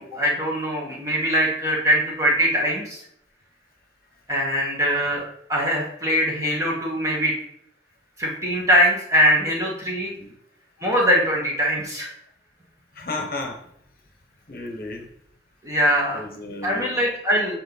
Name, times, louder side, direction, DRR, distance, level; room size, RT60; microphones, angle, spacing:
voice 1, 0.0-3.0 4.3-5.2 5.5-7.3 8.2-10.1 10.8-12.1 15.6-16.2 16.6-17.6, equal, 15° right, -3 dB, 1.6 m, -22 dB
voice 2, 9.9-10.3 12.9-13.6 14.5-15.1 16.1-17.0, left 2 dB, 50° left, 3 dB, 1.0 m, -33 dB
8.0 x 4.5 x 4.0 m, 0.72 s
head